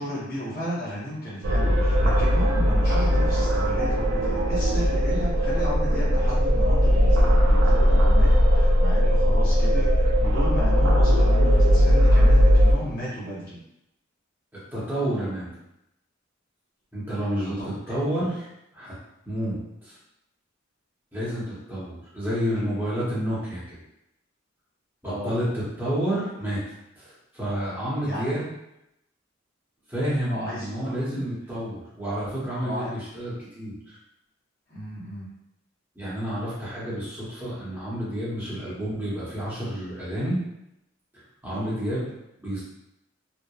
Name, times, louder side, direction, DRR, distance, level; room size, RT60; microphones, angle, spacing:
voice 1, 0.0-13.6 17.4-17.8 19.4-19.6 25.0-25.3 28.0-28.2 30.3-31.2 32.5-32.9 34.7-35.3 41.5-41.7, equal, 45° left, -10 dB, 0.8 m, -34 dB
sound 1, 1.4-12.7, equal, 70° right, 0.4 m, -19 dB
voice 2, 14.7-15.5 16.9-18.5 18.7-18.9 19.3-20.0 21.1-23.8 25.0-26.6 27.0-28.5 29.9-34.0 36.0-40.4 41.1-42.1 42.4-42.6, equal, 10° right, -9 dB, 0.7 m, -30 dB
2.8 x 2.0 x 2.3 m, 0.85 s
head